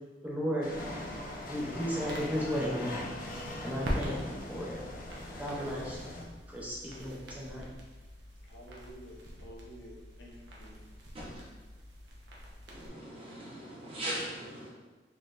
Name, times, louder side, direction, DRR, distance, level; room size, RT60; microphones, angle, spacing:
voice 1, 0.2-0.7 1.5-3.1 3.6-4.9 5.4-6.0 6.5-7.7, equal, 10° right, -5 dB, 0.5 m, -34 dB
sound 1, 0.6-6.2, left 1 dB, 50° left, 0.6 m, -41 dB
sound 2, 0.7-12.9, equal, 75° right, 0.7 m, -44 dB
voice 2, 8.5-10.8, equal, 80° left, -3 dB, 0.8 m, -51 dB
voice 3, 12.7-14.7, right 1 dB, 30° right, -6 dB, 1.0 m, -40 dB
3.8 x 3.1 x 2.5 m, 1.2 s
head